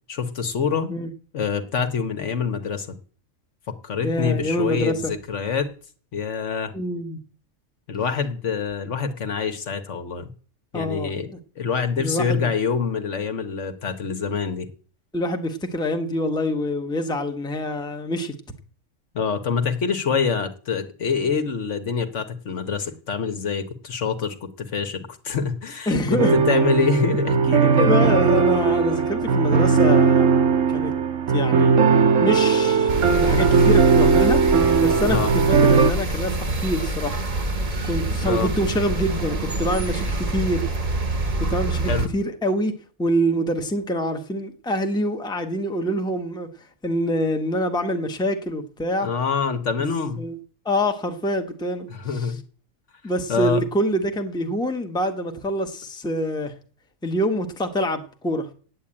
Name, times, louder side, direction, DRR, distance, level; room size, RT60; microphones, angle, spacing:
voice 1, 0.1-0.9 1.3-2.9 3.8-5.7 6.1-6.7 7.9-10.3 10.7-11.3 11.6-14.7 19.1-27.9 35.1-35.3 38.3-38.5 41.9-42.1 49.0-50.2 51.9-52.4 53.3-53.6, left 6 dB, 65° left, 1.4 m, -25 dB
voice 2, 4.0-5.1 6.7-7.2 10.7-11.4 12.0-12.5 15.1-18.3 25.9-26.3 27.9-30.3 30.7-30.9 31.3-31.8 32.2-34.4 34.8-37.2 37.8-40.7 41.4-42.7 43.0-49.1 50.2-50.4 50.6-52.3 53.0-56.5 57.0-58.5, equal, 5° left, 0.9 m, -25 dB
sound 1, 26.2-35.9, right 5 dB, 70° right, 1.3 m, -18 dB
sound 2, 32.9-42.1, right 2 dB, 35° right, 1.0 m, -26 dB
8.6 x 8.2 x 8.7 m
omnidirectional pair, 1.4 m